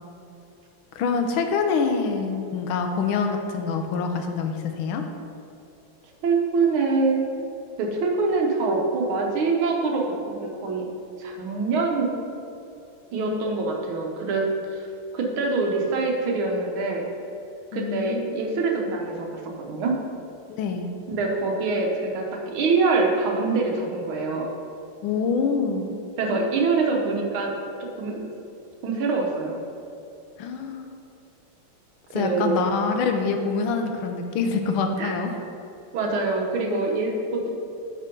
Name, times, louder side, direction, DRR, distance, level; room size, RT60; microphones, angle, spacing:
voice 1, 0.9-5.0 17.7-18.2 20.5-20.9 25.0-26.0 30.4-30.9 32.1-35.3, left 5 dB, 80° left, 5 dB, 1.5 m, -25 dB
voice 2, 6.2-7.2 7.8-10.9 11.2-12.2 13.1-14.4 14.7-14.9 15.1-17.0 17.7-19.3 19.7-19.9 21.1-24.5 26.2-27.5 28.0-28.3 28.8-29.6 32.1-32.6 35.0-35.1 35.9-37.5, right 3 dB, 75° right, 0 dB, 1.8 m, -24 dB
8.9 x 3.7 x 5.2 m, 2.6 s
omnidirectional pair, 2.3 m